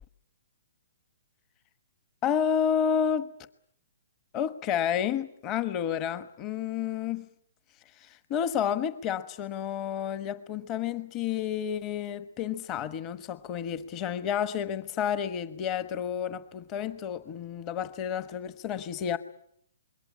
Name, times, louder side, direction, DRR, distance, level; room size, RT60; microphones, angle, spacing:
voice 1, 2.2-3.3 4.3-7.3 8.0-19.2, left 8 dB, 25° left, 1.2 m, -30 dB
26.5 x 22.0 x 8.5 m
hypercardioid pair, 160°, 0 cm